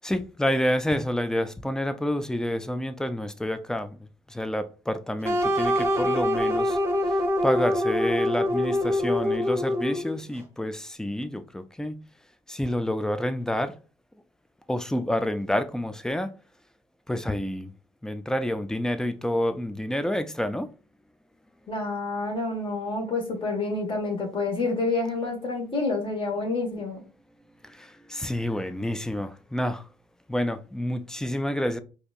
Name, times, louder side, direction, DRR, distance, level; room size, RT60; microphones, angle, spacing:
voice 1, 0.0-6.8 7.1-12.0 12.5-13.8 14.7-16.3 17.1-17.7 18.0-20.7 27.6-29.9 30.3-31.8, left 1 dB, 5° left, 0.4 m, -28 dB
sound 1, 5.2-10.2, left 1 dB, 20° right, 0.9 m, -25 dB
voice 2, 21.7-27.0, left 3 dB, 40° left, 1.6 m, -28 dB
4.4 x 2.7 x 2.4 m
cardioid pair, 80°, 14 cm